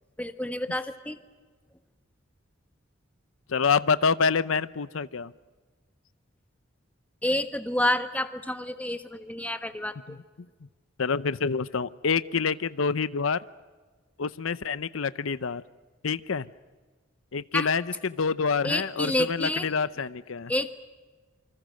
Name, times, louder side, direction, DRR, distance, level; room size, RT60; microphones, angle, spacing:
voice 1, 0.2-1.2 7.2-10.2 17.5-17.7 18.6-19.7 20.5-20.8, left 1 dB, 5° left, 9 dB, 1.3 m, -29 dB
voice 2, 3.5-5.3 10.1-10.2 11.0-13.4 14.2-15.6 16.0-16.5 17.3-20.5, left 5 dB, 90° left, 16 dB, 0.7 m, -27 dB
28.0 x 25.5 x 6.5 m, 1.4 s
head